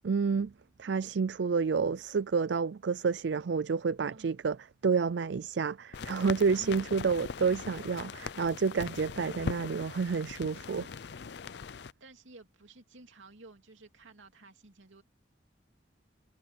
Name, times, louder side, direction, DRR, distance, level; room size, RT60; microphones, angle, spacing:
voice 1, 0.0-0.5 0.8-4.6 4.8-10.9, right 5 dB, 65° right, 0.4 m, -29 dB
sound 1, 5.9-11.9, left 5 dB, 60° left, 0.5 m, -41 dB
voice 2, 6.4-6.9 12.0-15.0, right 2 dB, 85° right, 2.7 m, -54 dB
head